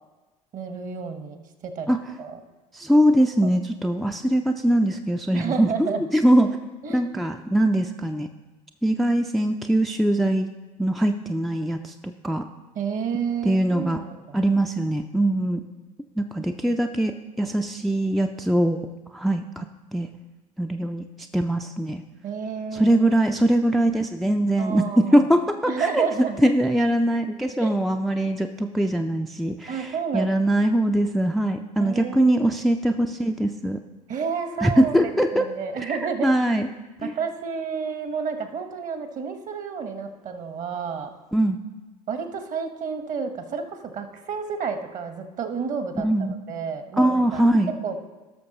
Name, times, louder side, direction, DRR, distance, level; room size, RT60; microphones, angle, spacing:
voice 1, 0.5-2.4 3.4-3.5 5.3-6.0 6.8-7.1 12.7-14.4 22.2-23.0 24.6-25.2 25.7-26.4 27.6-27.8 29.7-30.4 31.8-32.3 34.1-35.0 35.3-36.3 37.0-41.1 42.1-47.4 47.8-48.0, right 6 dB, 40° right, 8 dB, 1.2 m, -30 dB
voice 2, 2.7-5.9 6.1-6.6 6.9-8.3 8.8-10.5 10.8-12.5 13.4-14.0 14.3-15.6 16.2-18.8 19.1-19.7 19.9-20.1 20.6-21.0 21.3-22.0 22.7-26.1 26.4-33.8 34.6-35.5 35.8-36.7 37.0-37.1 41.3-41.6 46.0-46.4 47.0-47.7, right 1 dB, ahead, 6 dB, 0.3 m, -22 dB
17.5 x 6.3 x 2.9 m, 1.2 s
figure-of-eight pair, 70°, 20 cm